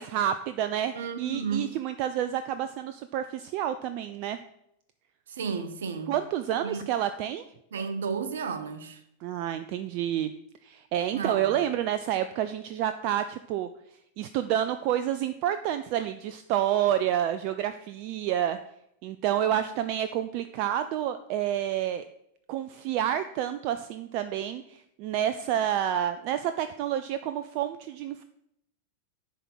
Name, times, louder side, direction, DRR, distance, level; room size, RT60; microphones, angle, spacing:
voice 1, 0.0-4.4 6.1-7.4 9.2-10.3 10.6-13.7 14.2-18.6 19.0-22.0 22.5-28.2, right 11 dB, 45° right, 0.3 m, -29 dB
voice 2, 1.0-1.7 5.3-6.1 6.6-6.8 7.7-9.0 11.1-11.6, right 5 dB, 65° right, 0.8 m, -33 dB
10.0 x 3.6 x 5.9 m
figure-of-eight pair, 90°, 0 cm